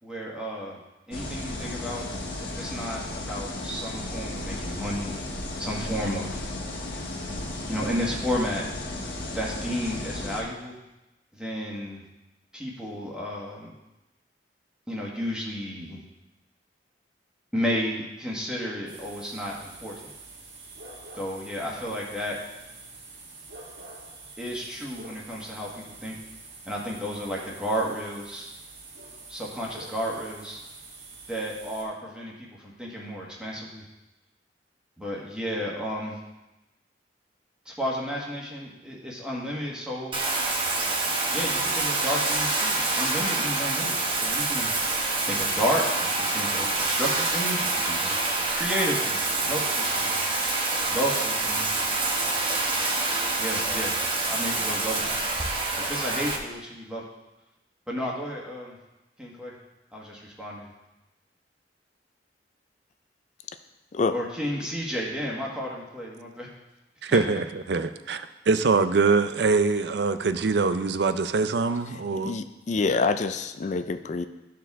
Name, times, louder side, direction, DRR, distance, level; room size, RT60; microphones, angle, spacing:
voice 1, 0.0-0.8 1.1-2.1 2.4-5.2 5.6-6.4 7.7-8.6 9.3-10.7 11.3-12.0 12.5-13.7 14.9-16.0 17.5-20.1 21.2-22.4 24.4-26.2 26.6-28.5 29.3-30.6 31.3-33.9 35.0-36.2 37.6-40.1 41.3-44.7 45.3-48.2 48.5-50.4 50.9-51.9 53.4-53.9 54.2-55.2 55.8-57.0 57.9-58.7 59.2-59.5 59.9-60.7 64.1-66.5 67.1-67.2, equal, 5° right, -4 dB, 1.4 m, -32 dB
sound 1, 1.1-10.4, left 2 dB, 60° left, 1.4 m, -34 dB
sound 2, 18.9-31.8, right 3 dB, 85° right, 1.8 m, -46 dB
Bathtub (filling or washing), 40.1-56.4, right 3 dB, 30° right, 1.0 m, -26 dB
voice 2, 67.0-72.4, right 4 dB, 65° right, 11 dB, 0.5 m, -24 dB
voice 3, 72.2-74.3, left 4 dB, 40° left, 10 dB, 0.4 m, -26 dB
13.5 x 4.7 x 3.6 m, 1.0 s
head